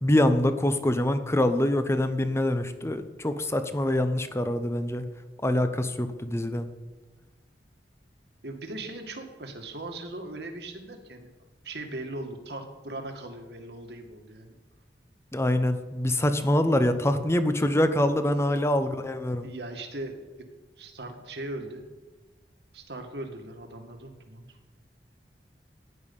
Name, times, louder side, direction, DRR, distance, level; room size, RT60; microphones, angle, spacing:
voice 1, 0.0-5.1 5.4-6.7 15.3-19.5, left 1 dB, 15° left, 10 dB, 0.8 m, -25 dB
voice 2, 8.4-11.3 11.6-14.6 16.6-17.0 17.5-17.6 18.3-18.6 19.4-20.2 20.8-21.8 22.7-24.6, right 2 dB, 70° right, 4 dB, 2.0 m, -39 dB
15.0 x 10.5 x 5.5 m, 1.3 s
head